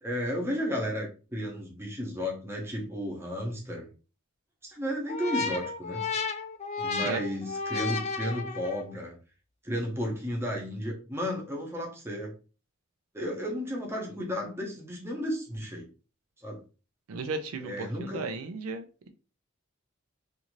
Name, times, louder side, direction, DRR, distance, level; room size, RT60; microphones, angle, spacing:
voice 1, 0.0-3.9 4.6-6.0 6.8-9.1 9.6-12.3 13.1-15.9 16.4-16.6 17.6-18.2, equal, 10° right, 0.7 m, -33 dB
sound 1, 5.1-9.0, left 4 dB, 30° left, 0.4 m, -33 dB
voice 2, 17.1-19.1, right 4 dB, 80° right, 0.4 m, -35 dB
2.6 x 2.5 x 3.0 m
head